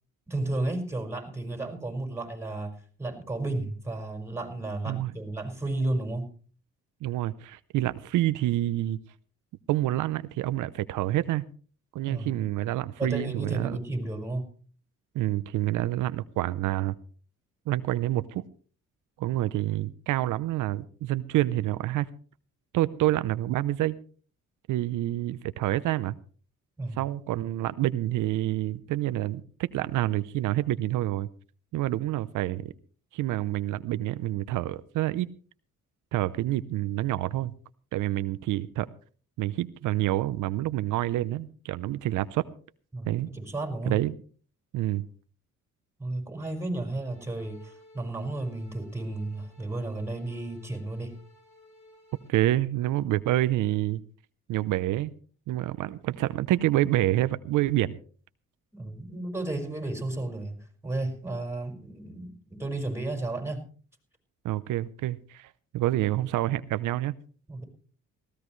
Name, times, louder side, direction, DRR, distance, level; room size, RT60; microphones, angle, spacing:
voice 1, 0.3-2.7 3.0-6.3 12.1-12.4 13.0-14.5 26.8-27.0 42.9-44.0 46.0-51.2 58.7-60.6 60.8-63.6 67.5-67.7, right 2 dB, 10° right, 3 dB, 5.5 m, -33 dB
voice 2, 7.0-9.0 9.7-11.4 11.9-13.8 15.1-16.9 17.7-18.4 19.2-22.1 22.7-24.0 24.7-26.2 27.0-31.3 31.7-32.7 33.1-35.3 36.1-37.5 37.9-38.9 39.4-42.4 43.1-43.3 43.9-44.1 44.7-45.1 52.3-54.0 54.5-55.1 55.5-58.0 64.4-67.1, right 15 dB, 85° right, 14 dB, 0.7 m, -27 dB
sound 1, 47.0-52.3, left 1 dB, 65° left, 7.6 m, -57 dB
19.0 x 16.5 x 3.2 m, 0.42 s
cardioid pair, 90°, 30 cm